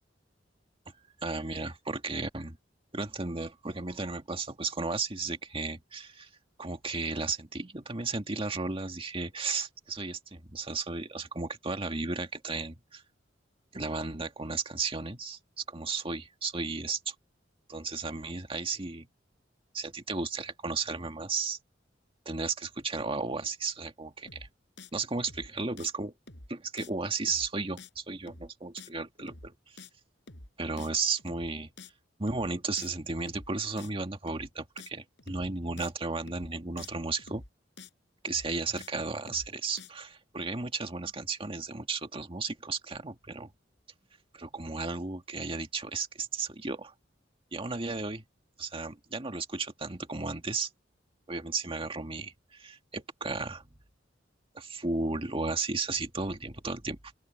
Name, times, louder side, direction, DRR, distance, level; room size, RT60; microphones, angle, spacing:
voice 1, 1.2-2.6 2.9-6.3 6.6-13.0 13.7-17.1 17.7-19.1 19.7-21.6 22.3-24.5 24.9-26.1 26.5-29.5 30.6-31.7 32.2-37.4 38.2-43.5 44.3-46.9 47.5-48.2 48.6-50.7 51.3-53.6 54.5-57.0, right 3 dB, 30° right, 1.9 m, -34 dB
sound 1, 24.3-24.5 24.8-24.9 25.2-25.5 25.8-25.9 26.3-26.5 26.8-26.9 27.2-27.5 27.8-27.9 28.3-28.5 28.8-28.9 29.2-29.5 29.8-29.9 30.3-30.5 30.8-30.9 31.2-31.5 31.8-31.9 32.3-32.5 32.8-32.9 33.2-33.5 33.8-33.9 34.3-34.5 34.8-34.9 35.2-35.5 35.8-35.9 36.3-36.5 36.8-36.9 37.2-37.5 37.8-37.9 38.3-38.5 38.8-38.9 39.2-39.5 39.8-39.9, left 3 dB, 70° left, 6.1 m, -48 dB
open air
head